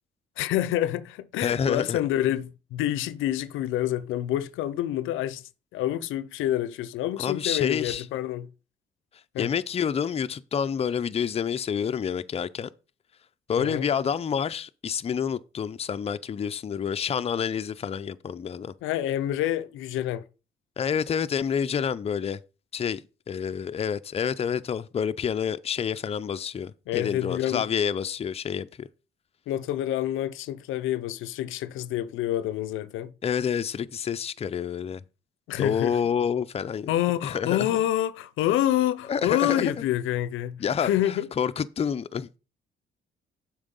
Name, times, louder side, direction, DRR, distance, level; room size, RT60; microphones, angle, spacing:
voice 1, 0.4-5.4 5.7-8.5 9.3-9.5 13.6-13.9 18.8-20.2 26.9-27.7 29.5-33.1 35.5-36.0 36.9-41.3, left 12 dB, 90° left, 0.5 m, -27 dB
voice 2, 1.4-2.0 7.2-8.0 9.4-12.7 13.5-18.7 20.8-22.4 22.7-28.9 33.2-35.0 35.6-36.9 37.2-37.7 39.1-39.8 40.6-42.4, left 7 dB, 30° left, 0.5 m, -28 dB
7.1 x 4.8 x 5.3 m
cardioid pair, 90°, 20 cm